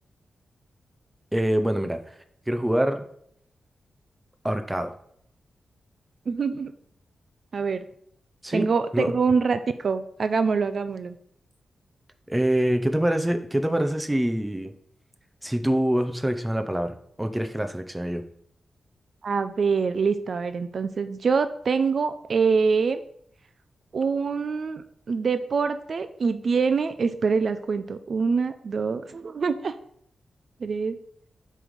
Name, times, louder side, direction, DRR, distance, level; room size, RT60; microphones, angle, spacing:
voice 1, 1.3-2.0 2.5-3.0 4.4-4.9 8.4-8.7 8.9-9.1 12.3-14.7 15.4-18.2, right 1 dB, 10° right, 7 dB, 0.6 m, -25 dB
voice 2, 6.3-6.7 7.5-7.8 8.5-11.1 19.2-23.0 23.9-29.7 30.6-31.0, right 5 dB, 55° right, 11 dB, 0.4 m, -25 dB
7.6 x 3.2 x 5.2 m, 0.69 s
wide cardioid pair, 115°, 0 cm